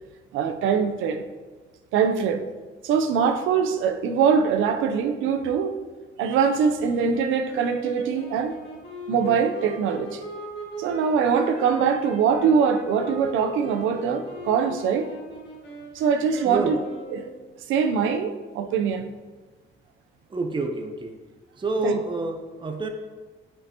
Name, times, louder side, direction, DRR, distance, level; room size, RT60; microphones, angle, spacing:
voice 1, 0.3-1.2 1.9-2.4 2.8-5.8 6.2-8.6 9.1-10.2 10.8-15.1 15.9-16.8 17.1-17.3 17.7-19.1 21.8-21.9, right 6 dB, 90° right, 0.6 m, -23 dB
sound 1, 6.8-17.5, equal, 60° left, 2.0 m, -39 dB
voice 2, 16.4-16.8 20.3-21.2 21.6-22.9, right 3 dB, 25° right, 0.7 m, -28 dB
8.8 x 5.6 x 2.9 m
cardioid pair, 90°, 20 cm